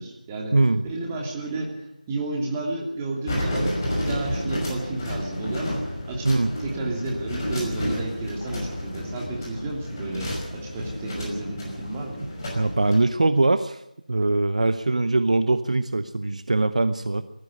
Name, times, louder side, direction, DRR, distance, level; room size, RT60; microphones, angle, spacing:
voice 1, 0.0-0.6 0.8-6.3 6.6-12.3, right 2 dB, 15° right, -1 dB, 2.9 m, -32 dB
voice 2, 0.5-0.8 6.2-6.5 12.5-13.8 14.1-17.2, right 2 dB, 50° right, 12 dB, 0.8 m, -22 dB
sound 1, 3.3-13.0, left 1 dB, 25° left, 5.6 m, -31 dB
18.5 x 14.5 x 9.8 m, 0.81 s
figure-of-eight pair, 165°, 5 cm